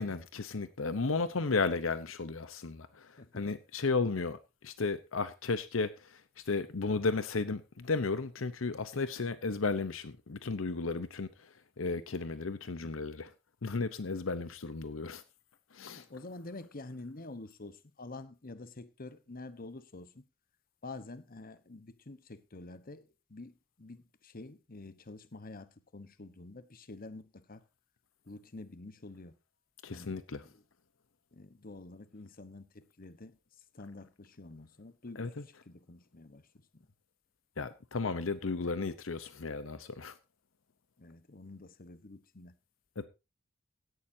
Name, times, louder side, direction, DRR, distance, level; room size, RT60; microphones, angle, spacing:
voice 1, 0.0-4.4 4.6-6.2 6.5-11.5 11.8-13.3 13.6-15.2 15.7-16.0 29.8-30.4 35.2-35.3 37.6-40.1 43.0-43.1, left 4 dB, 70° left, 0.8 m, -34 dB
voice 2, 15.8-20.2 20.8-27.6 28.3-29.3 29.9-30.2 30.4-30.6 31.3-33.4 33.7-35.3 35.7-36.5 36.7-36.8 41.0-42.6, left 2 dB, 45° left, 1.1 m, -48 dB
16.5 x 11.5 x 2.7 m
head